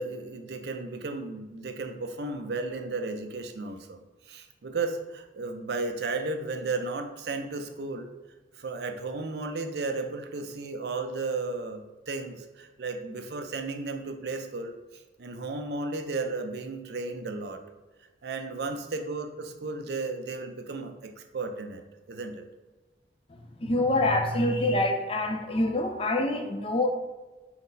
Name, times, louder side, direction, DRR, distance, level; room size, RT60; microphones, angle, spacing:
voice 1, 0.0-4.0 4.3-8.1 8.6-17.6 18.2-21.8 22.1-22.5, right 3 dB, 65° right, 6 dB, 0.5 m, -34 dB
voice 2, 23.3-26.9, left 1 dB, 30° left, 4 dB, 0.5 m, -26 dB
5.9 x 2.1 x 3.9 m, 1.2 s
head